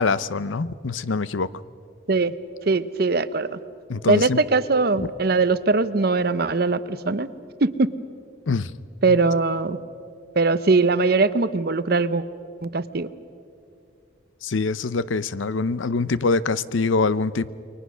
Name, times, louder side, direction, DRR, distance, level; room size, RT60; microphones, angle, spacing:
voice 1, 0.0-1.5 3.9-4.4 5.0-5.1 8.5-8.7 9.1-9.2 14.4-17.5, left 4 dB, 85° left, 17 dB, 0.6 m, -24 dB
voice 2, 2.7-3.6 4.1-7.3 7.6-7.9 9.0-9.8 10.4-12.2 12.6-13.1, right 3 dB, 50° right, 14 dB, 0.7 m, -21 dB
29.0 x 22.5 x 6.2 m, 2.5 s
head